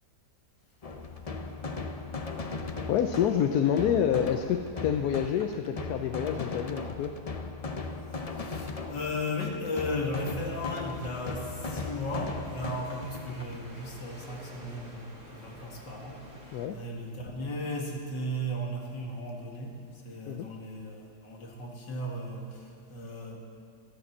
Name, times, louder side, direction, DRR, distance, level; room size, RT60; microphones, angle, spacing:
sound 1, 0.8-13.6, left 3 dB, 35° left, 0.5 m, -38 dB
voice 1, 2.9-7.2 16.5-16.8 20.3-20.5, left 9 dB, 70° left, 7 dB, 1.1 m, -27 dB
voice 2, 8.1-23.4, left 1 dB, 90° left, 0 dB, 2.6 m, -36 dB
sound 2, 10.2-16.7, right 1 dB, 55° right, 3.0 m, -48 dB
13.5 x 12.5 x 7.3 m, 2.2 s
omnidirectional pair, 1.8 m